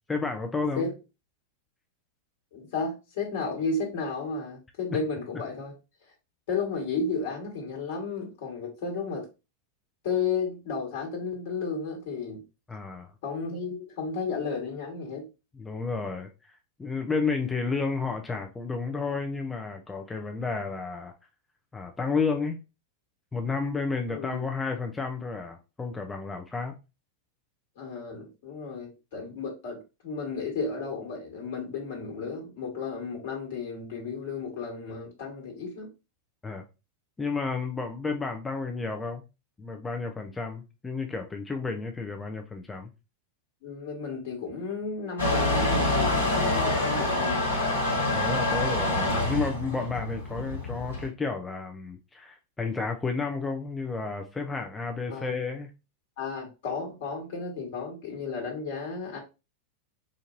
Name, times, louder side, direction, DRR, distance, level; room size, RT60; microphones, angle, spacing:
voice 1, 0.1-0.9 12.7-13.1 15.5-16.5 16.8-21.1 21.7-22.6 23.3-26.8 36.4-36.6 37.2-39.2 39.6-42.9 48.1-55.7, left 4 dB, 10° left, 0.5 m, -31 dB
voice 2, 2.5-5.7 6.5-9.3 10.0-12.4 13.2-15.3 24.1-24.4 27.8-35.9 43.6-47.5 55.1-55.4 56.2-59.2, left 4 dB, 50° left, 1.5 m, -33 dB
Motor vehicle (road) / Engine starting / Accelerating revving vroom, 45.2-51.1, left 2 dB, 70° left, 1.3 m, -26 dB
4.3 x 2.6 x 2.6 m
figure-of-eight pair, 90°, 0 cm